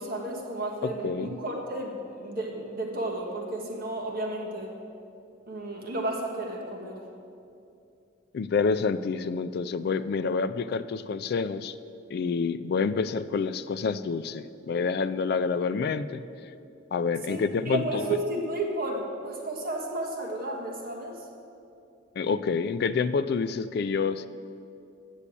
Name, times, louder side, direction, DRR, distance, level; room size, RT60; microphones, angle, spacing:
voice 1, 0.0-4.7 5.5-7.0 17.3-21.2, right 2 dB, 50° right, 0 dB, 1.4 m, -32 dB
voice 2, 0.8-1.3 8.3-11.7 12.1-16.2 16.9-18.2 22.2-24.3, left 5 dB, 55° left, 12 dB, 0.3 m, -28 dB
8.4 x 7.1 x 8.3 m, 2.6 s
head